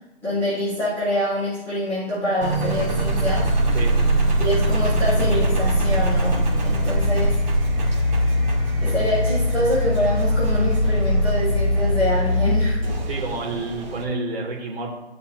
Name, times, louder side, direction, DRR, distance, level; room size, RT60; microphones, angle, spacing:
voice 1, 0.2-3.5 4.4-7.3 8.8-12.8, equal, 5° left, -15 dB, 4.0 m, -25 dB
Engine, 2.4-14.0, equal, 40° right, 2.9 m, -21 dB
voice 2, 13.1-14.9, right 2 dB, 60° right, -3 dB, 3.5 m, -29 dB
16.0 x 6.8 x 2.8 m, 0.97 s
figure-of-eight pair, 145°, 34 cm